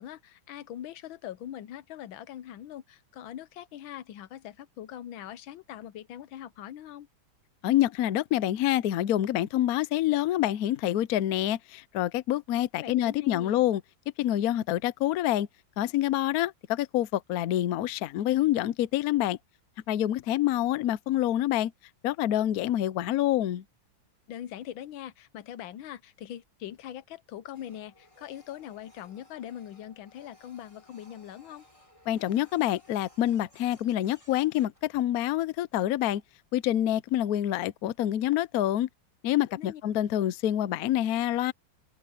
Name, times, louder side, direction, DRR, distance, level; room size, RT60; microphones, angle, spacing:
voice 1, 0.0-7.1 12.8-13.6 24.3-31.7 39.6-39.8, left 11 dB, 85° left, 1.6 m, -42 dB
voice 2, 7.6-13.8 14.2-15.5 15.8-19.4 19.9-21.7 22.0-23.6 32.1-36.2 36.5-38.9 39.2-41.5, left 13 dB, 65° left, 0.9 m, -27 dB
Printer, 27.5-35.4, left 1 dB, 15° left, 6.1 m, -59 dB
omnidirectional pair, 2.1 m